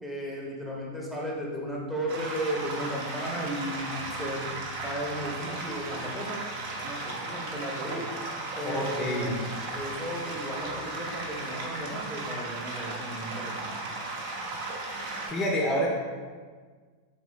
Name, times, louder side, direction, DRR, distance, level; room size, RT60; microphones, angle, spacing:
voice 1, 0.0-4.4 4.8-6.4 6.8-8.1 8.5-13.7, equal, 5° right, -4 dB, 0.8 m, -35 dB
sound 1, 2.1-15.3, right 2 dB, 50° right, 0.7 m, -36 dB
voice 2, 8.6-9.4 15.3-15.9, equal, 25° left, -2 dB, 0.6 m, -28 dB
3.9 x 3.3 x 3.1 m, 1.5 s
figure-of-eight pair, 90°, 0 cm